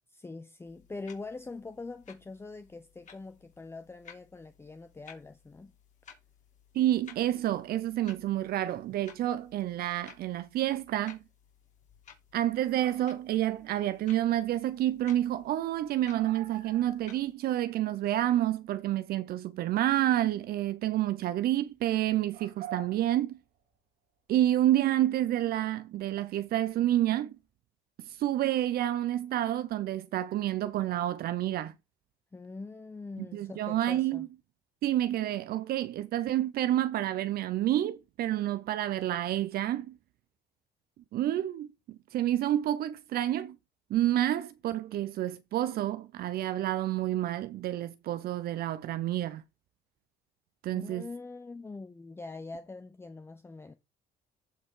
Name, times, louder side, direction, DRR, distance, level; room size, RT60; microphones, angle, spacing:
voice 1, 0.1-5.7 32.3-34.3 50.7-53.7, left 3 dB, 15° left, 0.7 m, -43 dB
sound 1, 0.6-17.3, left 7 dB, 45° left, 3.3 m, -57 dB
voice 2, 6.7-11.2 12.3-23.4 24.3-27.3 28.0-31.7 33.3-34.3 34.8-40.0 41.1-43.6 43.9-49.4 50.6-51.0, right 13 dB, 65° right, 0.6 m, -29 dB
sound 2, 9.9-10.3 12.5-13.4 13.6-14.1 14.5-14.6 15.0-15.1 15.2-15.3 15.6-17.1 17.4-17.5 17.9-18.3 20.6-20.7 22.3-23.8 24.5-24.9 26.6-26.7 27.1-27.3, right 9 dB, 90° right, 2.8 m, -47 dB
14.5 x 5.2 x 3.7 m
cardioid pair, 110°, 17 cm